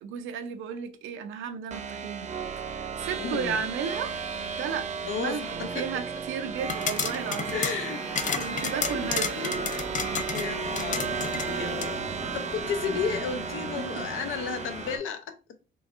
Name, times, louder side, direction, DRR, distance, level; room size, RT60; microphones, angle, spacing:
voice 1, 0.0-2.3 2.7-4.2 4.6-4.9 5.2-7.6 8.4-9.8 11.2-11.5 12.1-12.3 13.8-14.0, right 7 dB, 85° right, 0.6 m, -34 dB
sound 1, 1.7-15.0, right 5 dB, 35° right, 0.5 m, -34 dB
voice 2, 3.2-3.6 5.0-5.8 7.5-8.0 8.9-9.7 10.3-12.0 12.3-15.4, left 6 dB, 85° left, 0.6 m, -33 dB
sound 2, 6.6-11.9, left 6 dB, 40° left, 0.4 m, -32 dB
sound 3, 6.7-15.0, left 1 dB, 65° left, 1.3 m, -42 dB
3.9 x 2.5 x 2.4 m
cardioid pair, 90°, 20 cm